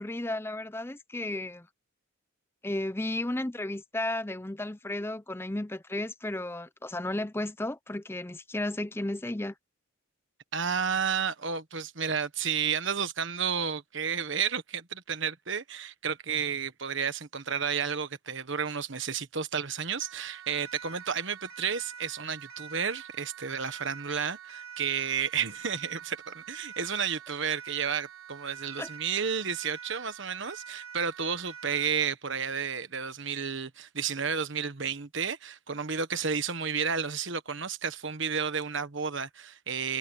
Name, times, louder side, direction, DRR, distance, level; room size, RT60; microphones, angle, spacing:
voice 1, 0.0-1.7 2.6-9.5 28.8-28.9, left 1 dB, 10° left, 0.6 m, -33 dB
voice 2, 10.5-40.0, right 6 dB, 55° right, 1.4 m, -32 dB
Siren, 20.0-32.0, right 8 dB, 80° right, 4.0 m, -46 dB
head